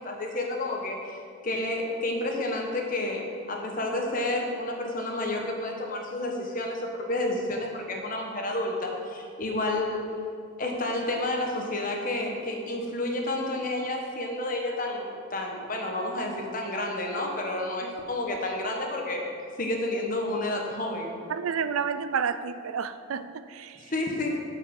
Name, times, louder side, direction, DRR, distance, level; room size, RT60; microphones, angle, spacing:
voice 1, 0.0-10.1 10.6-21.2 23.8-24.4, left 1 dB, 40° left, 1.3 m, -30 dB
voice 2, 21.3-23.9, right 6 dB, 80° right, 0.4 m, -30 dB
12.5 x 5.6 x 5.4 m
head